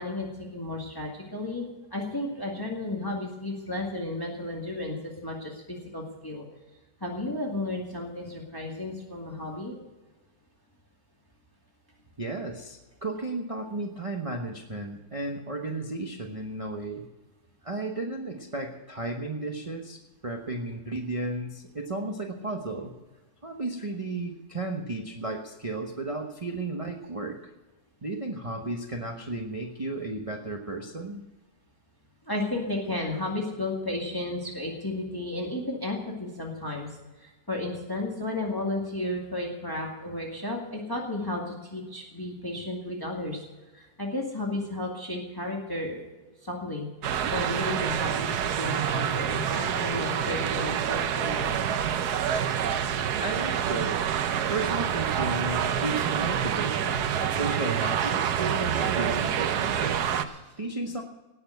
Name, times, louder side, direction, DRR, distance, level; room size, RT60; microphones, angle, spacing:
voice 1, 0.0-1.6 1.9-6.5 7.0-9.7 32.3-36.9 37.2-43.4 43.7-46.0 46.4-46.9 47.3-48.3 48.6-51.6 60.3-60.5, left 2 dB, 15° left, -1 dB, 2.1 m, -33 dB
voice 2, 12.2-17.0 17.6-22.9 23.4-27.4 28.0-31.2 53.2-54.1 54.5-60.1 60.6-61.0, right 2 dB, 25° right, 1 dB, 1.0 m, -34 dB
sound 1, 47.0-60.2, right 8 dB, 90° right, 1.4 m, -27 dB
17.5 x 7.0 x 7.9 m, 1.2 s
omnidirectional pair, 1.6 m